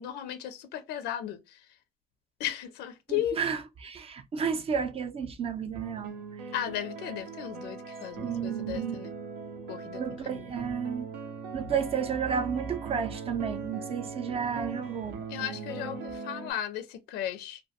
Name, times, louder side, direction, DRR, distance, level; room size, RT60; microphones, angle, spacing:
voice 1, 0.0-1.6 2.4-3.4 6.5-9.1 9.7-10.4 15.3-17.6, left 11 dB, 85° left, 0.4 m, -35 dB
voice 2, 3.1-6.5 8.2-9.0 10.0-11.1 11.5-15.2, right 6 dB, 35° right, 0.4 m, -32 dB
sound 1, 5.8-16.5, right 5 dB, 90° right, 0.6 m, -40 dB
2.2 x 2.1 x 2.7 m
cardioid pair, 110°, 17 cm